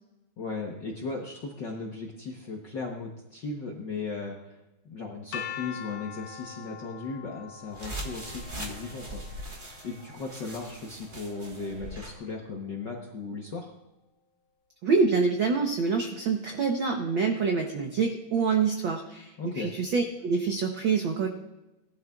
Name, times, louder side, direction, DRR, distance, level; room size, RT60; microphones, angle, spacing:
voice 1, 0.4-4.6 4.8-9.2 9.8-13.7 19.4-19.7, left 4 dB, 65° left, -1 dB, 1.1 m, -37 dB
sound 1, 5.3-11.2, left 9 dB, 85° left, 2.3 m, -43 dB
sound 2, 7.7-12.2, right 1 dB, 35° right, 0.7 m, -41 dB
voice 2, 14.8-21.3, right 5 dB, 80° right, 3 dB, 1.1 m, -26 dB
19.0 x 12.0 x 2.4 m, 0.98 s
omnidirectional pair, 3.5 m